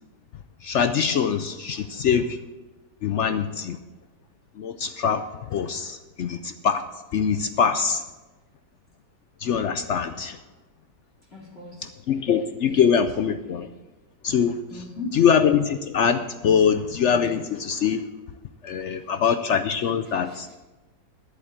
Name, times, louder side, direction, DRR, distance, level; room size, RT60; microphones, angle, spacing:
voice 1, 0.6-2.4 3.0-3.8 4.6-5.2 5.5-6.8 7.1-8.0 9.4-10.4 12.1-13.7 14.2-14.6 15.1-18.1 18.6-20.5, left 7 dB, 70° left, 10 dB, 0.6 m, -23 dB
voice 2, 11.3-11.9 12.6-13.0 14.7-15.2 19.0-19.1 20.0-20.6, left 3 dB, 35° left, -3 dB, 2.7 m, -39 dB
11.0 x 7.8 x 8.9 m, 1.2 s
omnidirectional pair, 1.8 m